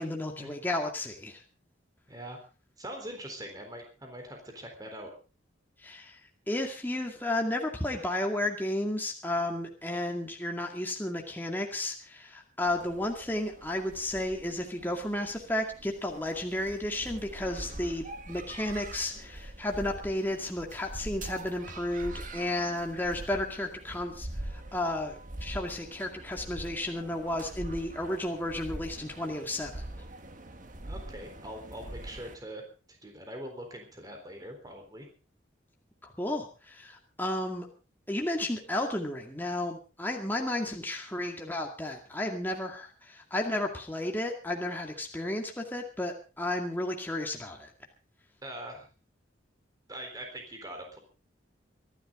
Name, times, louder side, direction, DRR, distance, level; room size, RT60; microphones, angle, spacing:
voice 1, 0.0-1.4 5.8-6.2 6.5-29.8 36.0-37.7 38.1-47.7, left 1 dB, 10° left, 1 dB, 2.2 m, -33 dB
voice 2, 2.1-2.4 2.8-5.1 30.9-32.6 32.9-35.1 48.4-48.9 49.9-51.0, right 1 dB, 20° right, 3 dB, 3.9 m, -42 dB
sound 1, 12.7-32.4, right 1 dB, 45° right, 1.5 m, -44 dB
24.5 x 12.0 x 3.7 m, 0.33 s
head